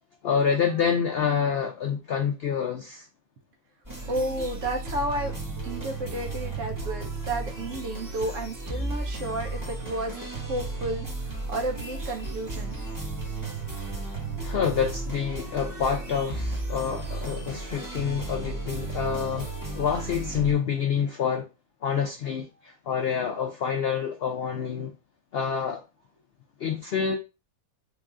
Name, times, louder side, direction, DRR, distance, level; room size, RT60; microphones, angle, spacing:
voice 1, 0.2-3.1 14.4-21.5 21.8-24.9 25.3-25.8 26.6-27.2, left 7 dB, 70° left, 0.5 m, -27 dB
sound 1, 3.8-20.5, right 3 dB, 15° right, 1.1 m, -34 dB
voice 2, 4.1-5.3 5.6-10.1 10.4-11.1 11.5-12.8, right 1 dB, 60° right, 1.0 m, -31 dB
3.9 x 2.4 x 3.6 m
omnidirectional pair, 1.6 m